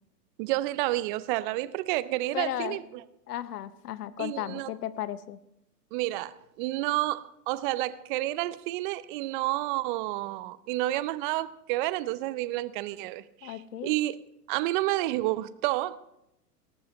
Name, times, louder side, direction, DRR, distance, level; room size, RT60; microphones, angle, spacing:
voice 1, 0.4-3.0 4.2-4.7 5.9-14.2 14.5-16.0, right 17 dB, 35° right, 0.5 m, -30 dB
voice 2, 2.3-2.8 3.3-5.4 13.4-13.9, left 12 dB, 70° left, 0.9 m, -35 dB
18.5 x 13.0 x 3.1 m
hypercardioid pair, 110°, 48 cm